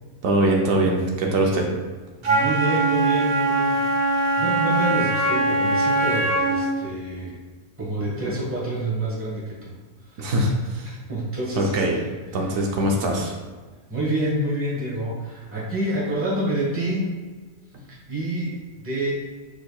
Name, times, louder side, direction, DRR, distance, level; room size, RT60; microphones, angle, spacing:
voice 1, 0.2-1.7 10.2-10.9 11.6-11.9 12.3-13.3, right 1 dB, 75° right, 0 dB, 1.1 m, -22 dB
voice 2, 2.2-7.4 7.8-9.7 10.1-10.3 11.1-12.1 12.5-12.6 13.9-17.1 18.1-19.1, right 1 dB, 10° right, -5 dB, 1.0 m, -28 dB
Wind instrument woodwind instrument, 2.2-6.7, right 2 dB, 50° right, 0.9 m, -21 dB
6.3 x 3.4 x 2.3 m, 1.4 s
omnidirectional pair, 1.4 m